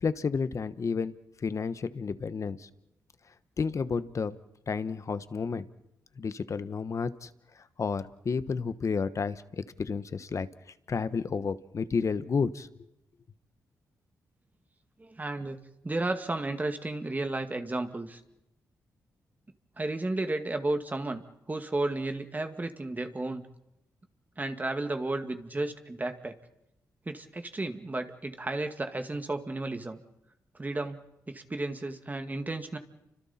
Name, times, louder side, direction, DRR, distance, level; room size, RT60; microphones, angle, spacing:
voice 1, 0.0-1.1 1.4-2.7 3.6-4.4 4.7-5.6 6.2-7.3 7.8-10.5 10.9-12.7, left 5 dB, 50° left, 14 dB, 1.1 m, -31 dB
voice 2, 15.0-15.6 15.8-18.2 19.8-21.2 21.5-23.5 24.4-26.4 27.1-30.0 30.6-31.0 31.3-32.8, right 2 dB, 25° right, 6 dB, 2.1 m, -33 dB
30.0 x 25.5 x 4.4 m, 0.86 s
cardioid pair, 70°, 7 cm